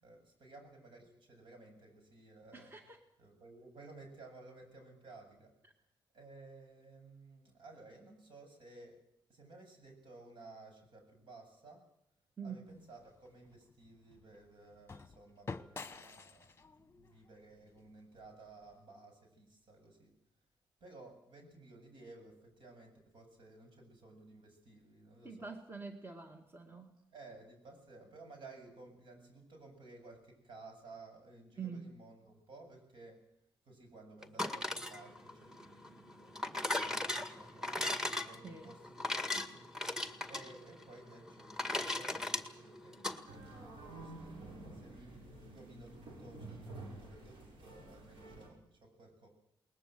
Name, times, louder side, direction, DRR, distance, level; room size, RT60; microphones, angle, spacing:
voice 1, 0.0-2.7 3.2-5.5 6.1-9.0 9.3-11.9 12.4-20.1 20.8-25.5 27.1-33.3 33.6-39.6 40.3-49.3, right 2 dB, 75° right, 4 dB, 7.7 m, -56 dB
voice 2, 2.5-3.0 12.4-12.6 25.2-26.9 31.6-31.9 38.4-38.7, right 5 dB, 25° right, 4 dB, 2.1 m, -45 dB
sound 1, 12.7-18.8, left 4 dB, 30° left, 1.1 m, -51 dB
sound 2, 34.2-43.2, left 2 dB, 5° right, 2.0 m, -38 dB
sound 3, 43.3-48.5, right 2 dB, 90° right, 7.1 m, -50 dB
20.5 x 20.5 x 7.8 m, 0.77 s
cardioid pair, 85°, 8 cm